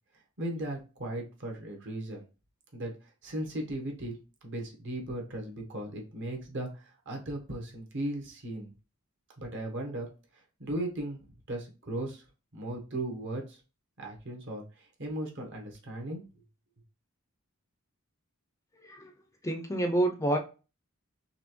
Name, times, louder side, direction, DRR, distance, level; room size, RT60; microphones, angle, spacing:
voice 1, 0.4-2.2 2.7-4.2 4.4-8.7 9.4-10.1 10.3-12.2 12.5-13.6 14.0-16.2, right 1 dB, 55° right, 1 dB, 1.1 m, -37 dB
voice 2, 19.4-20.4, right 1 dB, 15° left, 4 dB, 0.4 m, -28 dB
4.2 x 3.0 x 3.0 m, 0.32 s
head